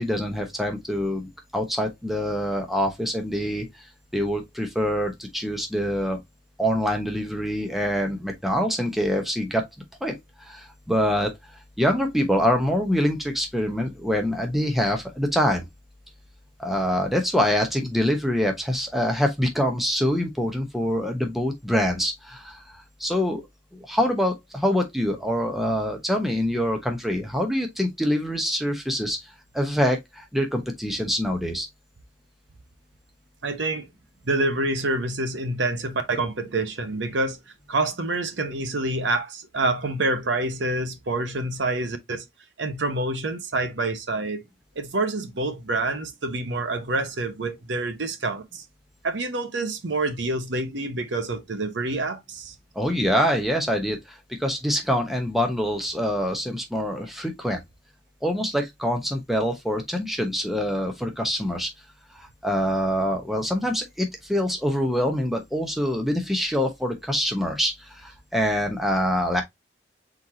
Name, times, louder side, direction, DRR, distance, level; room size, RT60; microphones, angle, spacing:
voice 1, 0.0-3.7 4.1-6.2 6.6-9.6 10.0-11.3 11.8-15.7 16.6-22.6 23.0-23.4 23.7-29.2 29.5-31.7 52.7-57.6 58.2-61.7 62.1-69.4, equal, ahead, 0.9 m, -25 dB
voice 2, 33.4-33.9 34.2-37.4 37.7-42.2 42.6-44.4 44.8-48.6 49.0-52.5, right 2 dB, 75° right, 0.9 m, -27 dB
4.6 x 4.0 x 2.8 m
head